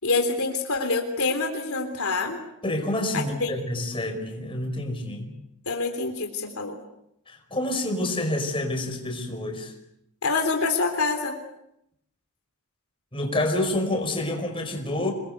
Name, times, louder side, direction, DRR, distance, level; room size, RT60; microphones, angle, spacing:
voice 1, 0.0-2.4 3.1-3.5 5.7-6.7 10.2-11.4, left 3 dB, 70° left, 5 dB, 3.5 m, -26 dB
voice 2, 2.6-5.3 7.3-9.7 13.1-15.1, left 1 dB, 25° left, 3 dB, 5.1 m, -28 dB
27.5 x 21.5 x 8.1 m, 0.79 s
head